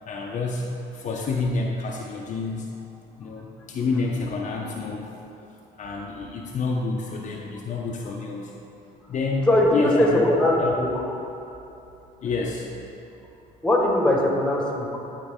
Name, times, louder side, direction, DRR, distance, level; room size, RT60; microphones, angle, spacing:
voice 1, 0.0-0.7 0.9-2.7 3.2-5.1 5.4-5.5 5.8-8.6 9.1-10.8 12.2-12.7, left 3 dB, 45° left, -1 dB, 0.7 m, -28 dB
voice 2, 9.5-10.9 13.6-15.0, left 1 dB, 5° left, -2 dB, 1.4 m, -20 dB
11.0 x 4.5 x 3.7 m, 2.8 s
cardioid pair, 110°, 17 cm